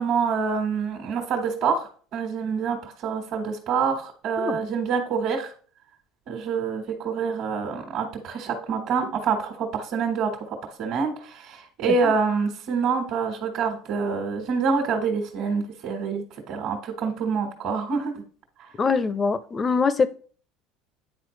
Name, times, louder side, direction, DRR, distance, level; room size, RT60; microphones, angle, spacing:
voice 1, 0.0-5.5 6.3-18.2 18.6-18.7, right 5 dB, 55° right, 1 dB, 1.4 m, -26 dB
voice 2, 18.8-20.1, left 5 dB, 25° left, 14 dB, 0.5 m, -23 dB
9.5 x 4.3 x 3.2 m, 0.43 s
supercardioid pair, 115°, 0 cm